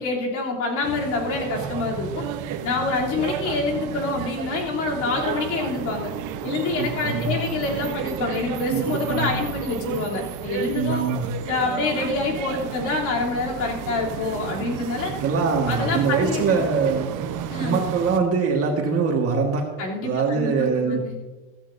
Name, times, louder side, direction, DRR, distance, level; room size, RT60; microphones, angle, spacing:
voice 1, 0.0-2.2 2.6-6.1 6.4-11.1 11.5-15.1 15.7-16.6 17.5-17.7 19.8-21.3, left 3 dB, 55° left, -3 dB, 3.3 m, -26 dB
sound 1, 0.8-18.2, right 9 dB, 60° right, 1.1 m, -32 dB
voice 2, 6.8-7.3 8.7-9.3 10.7-11.3 15.2-17.1 17.6-19.6 20.0-21.0, right 5 dB, 40° right, 1 dB, 1.8 m, -23 dB
15.0 x 14.0 x 2.7 m, 1.2 s
cardioid pair, 150°, 35 cm